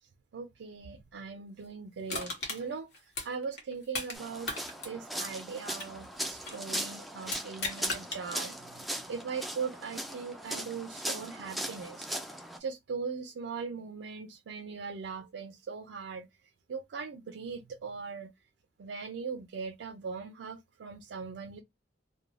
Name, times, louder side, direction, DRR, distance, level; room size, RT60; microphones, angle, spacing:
voice 1, 0.3-2.9 3.2-4.5 4.8-8.5 9.1-12.1 12.6-16.3 16.7-18.3 18.8-21.6, right 5 dB, 85° right, 0.4 m, -39 dB
Crushing, 2.1-4.2 4.4-6.7 7.2-8.2 8.7-8.8, left 3 dB, 65° left, 1.0 m, -37 dB
sound 1, 4.1-12.6, right 1 dB, ahead, 0.3 m, -39 dB
2.4 x 2.2 x 3.0 m
head